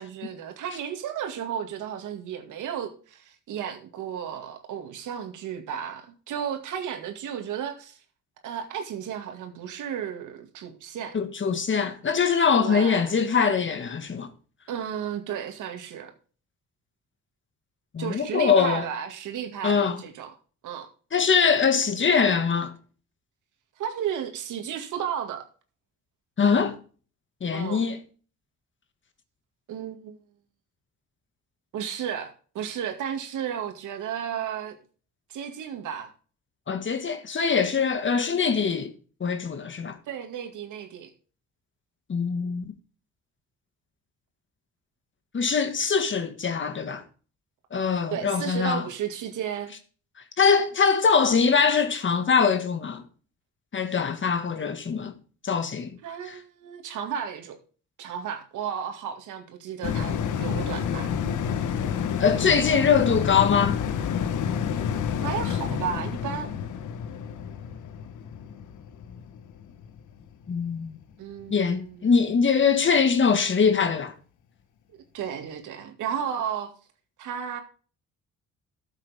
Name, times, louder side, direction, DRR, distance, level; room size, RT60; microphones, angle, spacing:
voice 1, 0.0-8.0 8.4-11.2 12.6-13.1 14.7-16.1 18.0-20.3 20.6-20.9 23.8-25.4 27.5-27.9 29.7-30.2 31.7-34.8 35.3-36.1 40.1-41.1 48.1-49.7 56.0-57.6 58.0-61.1 65.2-66.5 71.2-72.1 74.9-76.7 77.2-77.6, right 8 dB, 80° right, 2.2 m, -33 dB
voice 2, 11.1-14.3 17.9-18.9 19.6-20.0 21.1-22.7 26.4-26.8 27.4-28.0 36.7-38.9 39.2-40.0 42.1-42.6 45.3-47.0 47.7-48.8 50.4-53.0 53.7-55.1 55.4-56.0 56.3-56.4 62.2-63.8 70.5-71.0 71.5-74.1, left 6 dB, 40° left, 1.8 m, -23 dB
sound 1, 59.8-70.5 70.9-71.0, left 7 dB, 80° left, 1.2 m, -29 dB
13.0 x 7.4 x 3.6 m
cardioid pair, 90°, 30 cm